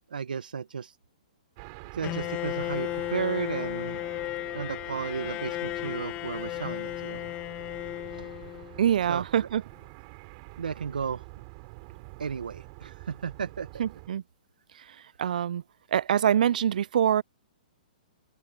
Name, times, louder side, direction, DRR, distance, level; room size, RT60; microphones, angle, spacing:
voice 1, 0.1-1.0 1.9-4.0 4.5-7.2 8.1-8.3 9.1-9.3 10.6-11.2 12.2-13.8 14.8-14.9, right 6 dB, 85° right, 1.2 m, -34 dB
sound 1, 1.6-14.1, right 29 dB, 40° right, 3.5 m, -47 dB
Bowed string instrument, 2.0-9.0, left 17 dB, 30° left, 1.7 m, -34 dB
voice 2, 8.8-9.6 13.8-14.2 15.2-15.6 15.9-17.2, right 9 dB, 70° right, 0.4 m, -24 dB
hypercardioid pair, 140°, 5 cm